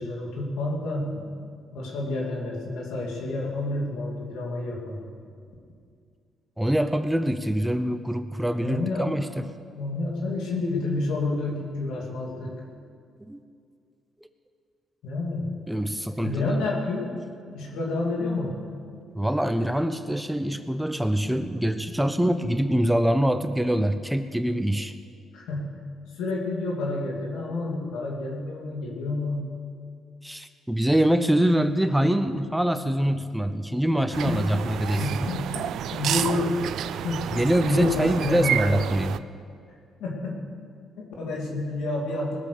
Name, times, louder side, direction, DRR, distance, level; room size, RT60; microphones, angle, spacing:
voice 1, 0.0-1.3 1.7-5.0 8.6-9.1 9.8-12.6 15.0-15.5 16.2-17.1 17.5-18.5 25.3-25.7 26.1-29.5 34.1-36.6 37.0-37.2 37.7-38.8 40.0-40.4 41.0-42.4, left 2 dB, 85° left, -2 dB, 2.4 m, -29 dB
voice 2, 6.6-9.5 13.3-13.4 15.7-16.6 19.1-24.9 30.2-35.2 37.3-39.2, right 1 dB, 5° right, 10 dB, 0.6 m, -24 dB
sound 1, 34.1-39.2, right 10 dB, 75° right, 0.4 m, -30 dB
19.5 x 7.5 x 6.8 m, 2.3 s
cardioid pair, 90°, 0 cm